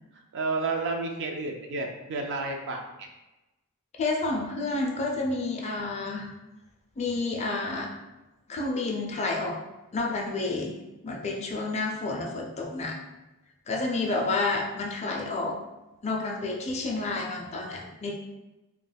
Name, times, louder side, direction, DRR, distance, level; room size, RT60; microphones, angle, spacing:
voice 1, 0.3-3.1, right 3 dB, 55° right, 3 dB, 0.4 m, -31 dB
voice 2, 4.0-6.3 7.0-7.9 8.5-9.6 9.9-10.8 11.0-13.0 13.7-15.6 16.0-18.1, left 3 dB, 30° left, 0 dB, 0.4 m, -30 dB
2.2 x 2.2 x 3.2 m, 1.0 s
head